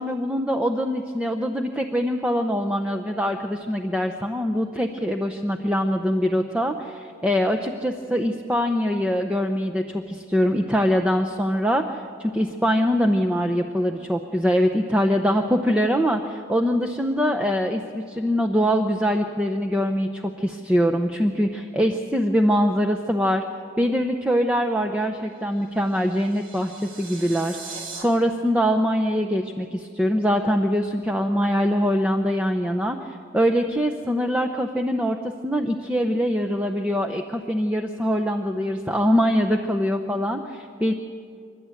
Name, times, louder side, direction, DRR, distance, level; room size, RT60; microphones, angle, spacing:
voice 1, 0.0-23.4 23.8-40.9, equal, 5° right, 3 dB, 0.7 m, -23 dB
sound 1, 25.3-28.0, right 4 dB, 75° right, 3.5 m, -40 dB
27.5 x 12.5 x 9.1 m, 2.3 s
head